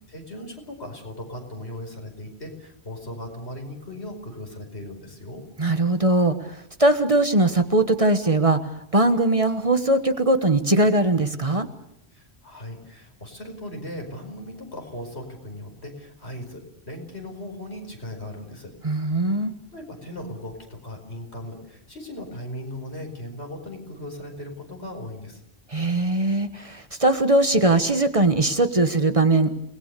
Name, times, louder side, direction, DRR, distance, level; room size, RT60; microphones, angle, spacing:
voice 1, 0.0-5.4 12.1-18.7 19.1-19.5 19.7-25.4, left 1 dB, 80° left, 3 dB, 5.3 m, -38 dB
voice 2, 5.6-11.7 18.8-19.5 25.7-29.5, right 2 dB, 35° right, 9 dB, 1.3 m, -20 dB
29.0 x 20.0 x 6.8 m, 0.76 s
omnidirectional pair, 1.1 m